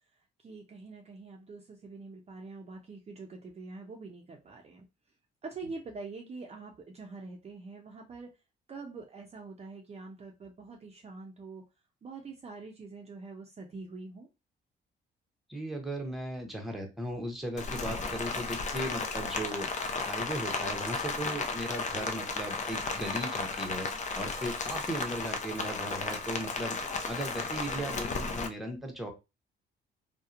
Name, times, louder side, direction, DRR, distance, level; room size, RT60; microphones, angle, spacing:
voice 1, 0.4-4.8 5.4-8.3 8.7-11.6 12.0-14.3, right 3 dB, 30° right, 1 dB, 0.5 m, -45 dB
voice 2, 15.5-19.7 20.1-23.9 24.1-26.8 27.1-29.1, right 1 dB, ahead, 2 dB, 0.7 m, -37 dB
Rain, 17.6-28.5, left 4 dB, 35° left, 0.5 m, -34 dB
2.7 x 2.1 x 2.4 m, 0.26 s
cardioid pair, 90°, 20 cm